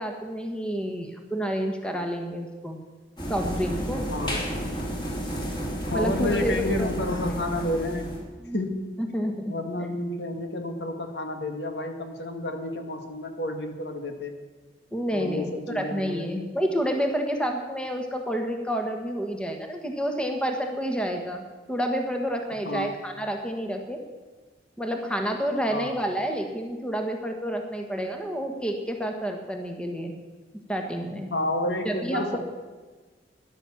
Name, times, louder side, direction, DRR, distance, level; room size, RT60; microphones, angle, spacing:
voice 1, 0.0-2.8 3.3-4.1 5.9-6.9 8.4-8.6 9.0-9.5 14.9-15.5 15.7-24.0 24.8-30.1 30.7-31.3 31.8-32.4, equal, 5° left, 3 dB, 1.3 m, -29 dB
sound 1, 3.2-8.2, equal, 25° left, 3.4 m, -31 dB
voice 2, 4.1-4.4 5.9-8.1 8.5-9.0 9.5-14.3 15.1-16.5 22.7-22.9 25.7-26.0 31.3-32.4, left 1 dB, 70° left, 5 dB, 1.8 m, -30 dB
13.5 x 11.0 x 7.1 m, 1.3 s
head